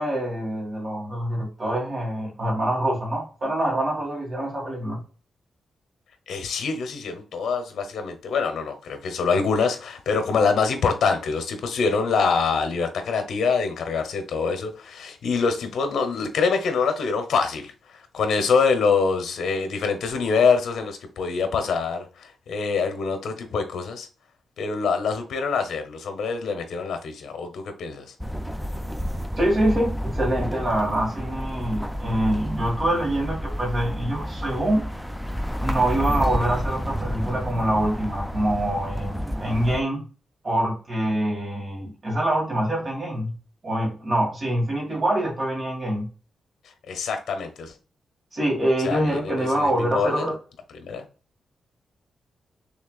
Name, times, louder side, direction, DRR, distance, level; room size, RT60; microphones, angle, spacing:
voice 1, 0.0-5.0 29.4-34.8 35.6-40.0 40.4-43.3 43.6-46.1 48.3-50.3, right 1 dB, 35° right, 2.0 m, -25 dB
voice 2, 6.3-24.1 24.6-28.1 46.9-47.7 48.8-50.3 50.8-51.0, left 5 dB, 75° left, 0.9 m, -25 dB
sound 1, 28.2-39.8, equal, ahead, 0.4 m, -30 dB
6.2 x 3.3 x 2.4 m
wide cardioid pair, 130°, 0 cm